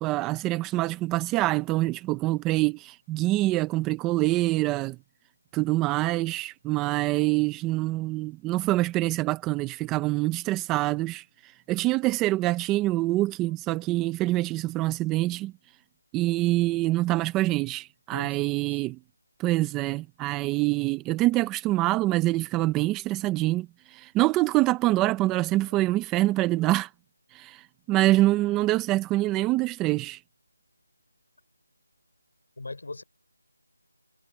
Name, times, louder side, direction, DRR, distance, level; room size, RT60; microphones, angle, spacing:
voice 1, 0.0-5.0 5.5-15.5 16.1-19.0 19.4-26.9 27.3-30.2, right 17 dB, 5° right, 0.4 m, -25 dB
voice 2, 18.1-18.8 25.6-25.7 27.9-28.0 32.6-33.0, left 3 dB, 50° left, 4.6 m, -41 dB
figure-of-eight pair, 180°, 0 cm